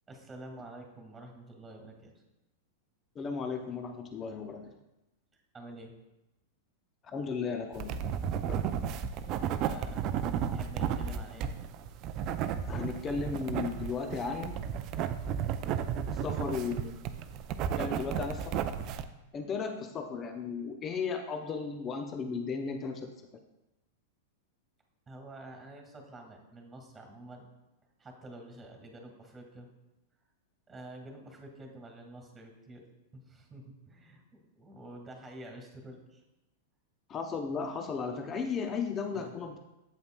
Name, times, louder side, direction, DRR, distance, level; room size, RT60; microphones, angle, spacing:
voice 1, 0.1-2.1 5.3-5.9 9.6-10.0 10.5-11.5 16.1-16.3 25.1-27.5 28.0-29.7 30.7-32.8 33.1-36.2 39.1-39.3, right 1 dB, 15° right, 3 dB, 1.9 m, -48 dB
voice 2, 3.2-4.7 7.1-8.0 8.5-8.6 12.7-14.5 16.2-16.9 17.8-18.6 19.3-23.1 37.1-39.6, left 5 dB, 30° left, 5 dB, 0.6 m, -35 dB
sound 1, 7.7-19.0, right 8 dB, 40° right, 0.4 m, -33 dB
8.4 x 7.9 x 2.3 m, 0.95 s
figure-of-eight pair, 95°, 0 cm